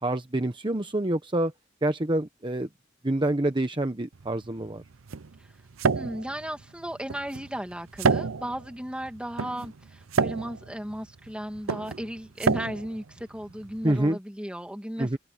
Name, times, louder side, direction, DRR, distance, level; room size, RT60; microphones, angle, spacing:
voice 1, 0.0-1.5 1.8-2.7 3.0-4.8 13.8-14.2 15.0-15.2, right 1 dB, 25° right, 1.0 m, -27 dB
sound 1, 4.1-14.0, right 5 dB, 90° right, 0.7 m, -30 dB
voice 2, 5.9-15.2, equal, 5° right, 2.5 m, -35 dB
open air
head